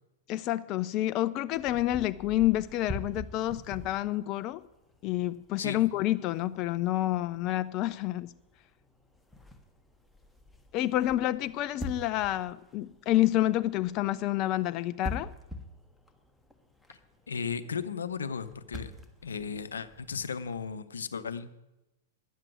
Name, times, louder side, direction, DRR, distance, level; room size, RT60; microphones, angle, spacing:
voice 1, 0.3-4.6 5.0-8.3 10.7-15.3, left 14 dB, 40° left, 14 dB, 0.4 m, -28 dB
sound 1, 1.5-20.8, left 1 dB, 5° left, 1.5 m, -46 dB
voice 2, 17.3-18.9 19.2-21.6, left 6 dB, 80° left, 13 dB, 0.7 m, -35 dB
10.0 x 7.6 x 9.2 m, 0.99 s
hypercardioid pair, 105°, 0 cm